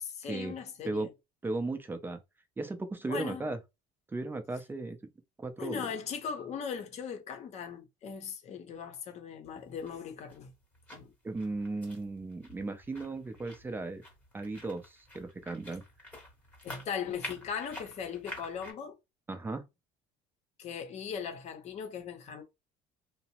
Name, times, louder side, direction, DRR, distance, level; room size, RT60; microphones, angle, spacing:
voice 1, 0.2-1.1 3.1-3.5 5.6-10.5 10.9-11.1 16.6-19.0 20.6-22.4, left 7 dB, 45° left, 0.7 m, -39 dB
voice 2, 1.4-2.2 2.6-3.6 4.1-5.0 5.4-5.9 11.2-14.0 14.3-15.8 19.3-19.6, right 2 dB, 10° right, 0.4 m, -36 dB
sound 1, 9.4-18.7, left 1 dB, 10° left, 0.9 m, -49 dB
2.6 x 2.0 x 2.9 m
cardioid pair, 125°, 16 cm